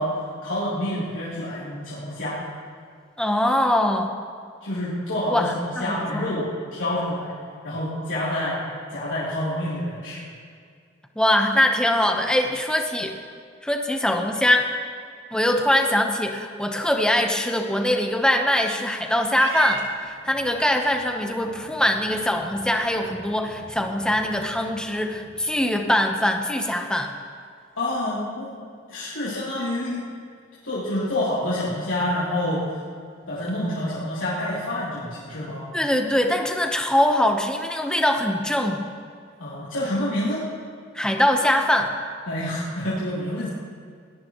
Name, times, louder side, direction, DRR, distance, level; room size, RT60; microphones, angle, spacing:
voice 1, 0.0-2.4 4.6-5.5 5.8-7.3 7.6-10.2 27.8-30.0 30.6-32.6 33.3-35.6 39.4-40.5 42.3-43.5, left 1 dB, 85° left, -11 dB, 3.4 m, -27 dB
voice 2, 3.2-4.1 5.3-6.2 11.2-13.1 13.6-14.7 15.3-27.1 35.7-38.8 40.9-41.9, left 1 dB, 5° left, 3 dB, 1.0 m, -22 dB
Purr / Meow, 19.3-25.8, right 4 dB, 75° right, 1.5 m, -41 dB
21.0 x 17.5 x 3.1 m, 2.2 s
head